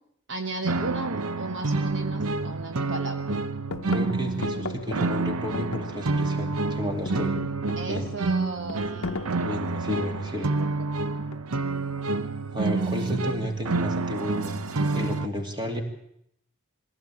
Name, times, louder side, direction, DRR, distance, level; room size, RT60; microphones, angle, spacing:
voice 1, 0.3-3.3 7.8-9.6 10.6-10.7 11.2-11.3, right 2 dB, 55° right, 6 dB, 1.2 m, -35 dB
sound 1, 0.6-15.3, right 3 dB, 90° right, 0.8 m, -28 dB
sound 2, 1.9-2.0 2.4-3.0 3.3-6.4 6.7-10.3 11.3-11.8, left 3 dB, 80° left, 0.9 m, -38 dB
voice 2, 3.9-7.3 7.9-8.1 9.4-10.6 12.5-15.8, equal, 20° right, 4 dB, 2.5 m, -32 dB
21.0 x 16.0 x 8.5 m, 0.75 s
head